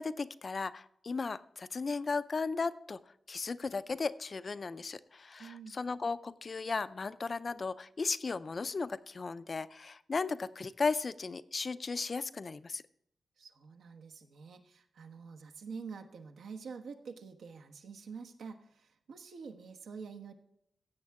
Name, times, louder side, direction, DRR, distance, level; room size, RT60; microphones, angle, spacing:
voice 1, 0.0-3.0 3.3-12.8, left 4 dB, 30° left, 15 dB, 0.4 m, -36 dB
voice 2, 5.4-5.8 13.4-20.3, right 5 dB, 85° right, 5 dB, 1.2 m, -47 dB
16.0 x 7.7 x 3.6 m, 0.74 s
wide cardioid pair, 175°, 0 cm